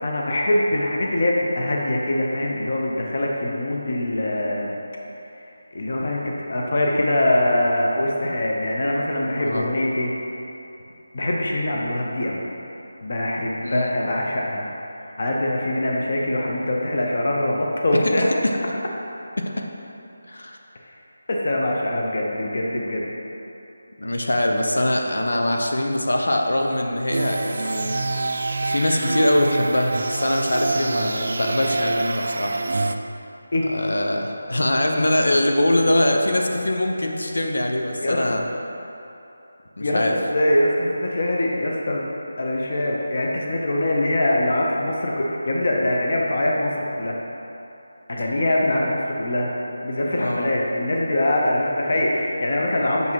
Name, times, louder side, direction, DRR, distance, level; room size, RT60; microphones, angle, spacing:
voice 1, 0.0-4.8 5.7-10.1 11.1-12.4 13.0-14.7 15.2-18.3 21.3-23.1 33.5-33.7 38.0-38.4 39.8-42.1 42.4-47.1 48.1-49.5 49.8-53.1, left 1 dB, 35° left, -2 dB, 0.8 m, -23 dB
voice 2, 9.3-9.7 13.6-13.9 18.4-18.5 19.4-19.6 20.3-20.6 24.0-28.0 28.6-32.6 33.7-38.4 39.8-40.2 50.2-50.5, left 1 dB, 85° left, 2 dB, 1.0 m, -23 dB
sound 1, 27.1-33.0, right 2 dB, 40° right, 0.3 m, -26 dB
8.3 x 6.0 x 4.6 m, 2.9 s
figure-of-eight pair, 180°, 0 cm